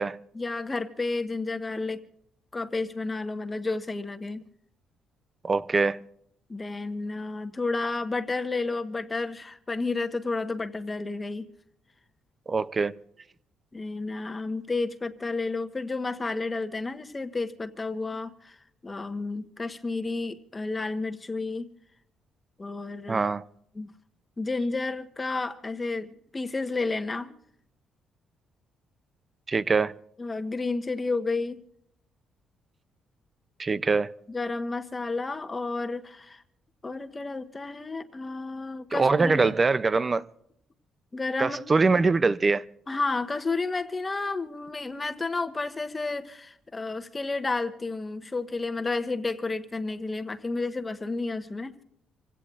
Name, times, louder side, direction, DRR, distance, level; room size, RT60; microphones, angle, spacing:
voice 1, 0.3-2.0 2.5-4.4 6.5-11.4 13.7-18.6 18.8-21.6 22.6-23.2 23.7-23.9 24.4-27.3 30.2-31.6 34.3-36.4 36.8-39.5 41.1-41.8 42.9-51.8, left 3 dB, 20° left, 1.2 m, -31 dB
voice 2, 5.4-6.0 12.5-12.9 23.1-23.4 29.5-29.9 33.6-34.2 38.9-40.3 41.4-42.6, right 4 dB, 25° right, 0.6 m, -23 dB
27.0 x 16.5 x 2.5 m
cardioid pair, 135°, 0 cm